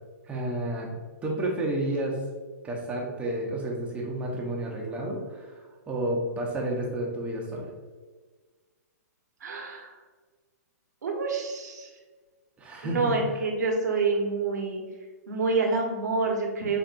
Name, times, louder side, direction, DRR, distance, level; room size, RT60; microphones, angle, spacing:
voice 1, 0.3-0.9 1.2-2.2 2.6-7.7 12.6-13.2, right 1 dB, 15° right, -1 dB, 0.8 m, -31 dB
voice 2, 9.4-9.9 11.0-11.9 12.8-14.8 15.3-16.8, right 3 dB, 80° right, 0 dB, 1.2 m, -27 dB
7.2 x 2.6 x 2.6 m, 1.4 s
hypercardioid pair, 140°, 9 cm